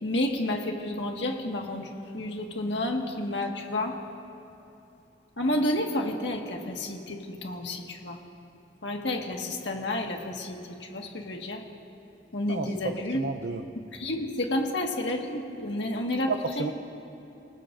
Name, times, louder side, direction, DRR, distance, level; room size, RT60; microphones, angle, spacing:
voice 1, 0.0-4.0 5.4-8.2 8.8-11.6 12.3-13.2 13.9-16.3 16.6-16.7, left 1 dB, 75° left, 1 dB, 1.7 m, -30 dB
voice 2, 12.5-13.7 16.3-16.7, right 4 dB, 90° right, 4 dB, 0.7 m, -32 dB
28.0 x 18.5 x 2.6 m, 2.9 s
head